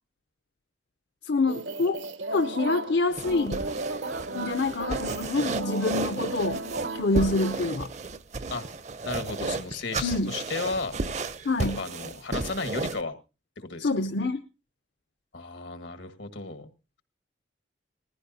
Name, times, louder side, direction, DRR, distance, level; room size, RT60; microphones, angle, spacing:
voice 1, 1.2-3.6 4.3-6.6 6.9-7.9 10.0-10.3 11.4-11.8 13.8-14.4, left 3 dB, 65° left, 10 dB, 0.7 m, -26 dB
sound 1, 1.5-7.6, right 2 dB, 80° right, 1.0 m, -35 dB
sound 2, 3.1-13.0, right 3 dB, 40° right, 0.6 m, -33 dB
voice 2, 9.0-11.0 11.6-13.1 13.6-13.9 15.3-16.7, left 3 dB, 85° left, 8 dB, 1.7 m, -34 dB
20.0 x 15.0 x 2.7 m, 0.31 s
head